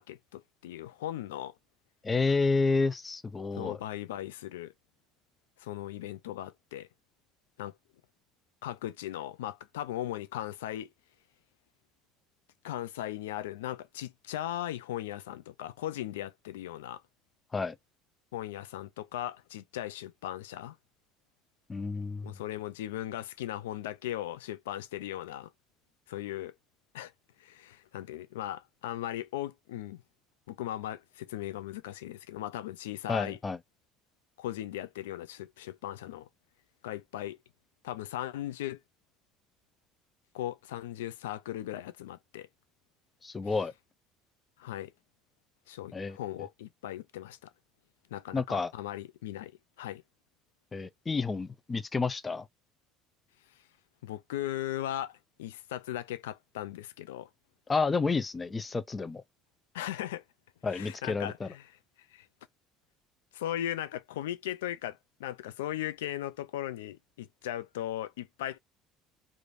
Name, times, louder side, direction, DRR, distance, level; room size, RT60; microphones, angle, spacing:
voice 1, 0.0-1.6 3.5-4.7 5.6-6.9 7.6-7.8 8.6-10.9 12.6-17.0 18.3-20.8 22.2-25.5 26.1-26.6 26.9-27.1 27.4-30.0 30.5-33.4 34.4-36.3 36.8-37.4 37.8-38.8 40.3-42.5 43.4-43.6 44.6-44.9 45.7-47.5 48.1-49.5 49.8-50.0 54.0-57.3 59.7-60.2 60.6-61.7 62.1-62.3 63.3-68.6, left 13 dB, 85° left, 0.3 m, -38 dB
voice 2, 2.0-3.8 17.5-17.7 21.7-22.3 33.1-33.6 43.2-43.7 45.9-46.5 48.3-48.7 50.7-52.5 57.7-59.2 60.6-61.5, left 4 dB, 25° left, 0.5 m, -30 dB
3.1 x 2.5 x 2.5 m
hypercardioid pair, 70°, 0 cm